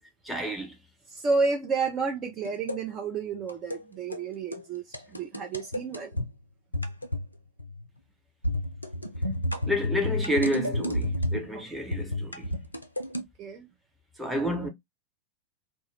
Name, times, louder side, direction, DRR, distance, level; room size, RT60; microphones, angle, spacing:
voice 1, 0.2-0.8 9.7-12.7 14.2-14.7, equal, 5° right, 0.8 m, -30 dB
voice 2, 1.1-6.3 11.5-11.6 13.4-13.7, right 4 dB, 30° right, 0.5 m, -31 dB
sound 1, 2.4-2.8 3.5-3.8 4.1-4.3 4.5-4.6 4.9-6.3 6.7-7.3 7.6-7.9 8.4-11.5 11.9-13.2, left 1 dB, 85° left, 0.4 m, -31 dB
2.2 x 2.1 x 3.2 m
figure-of-eight pair, 90°, 0 cm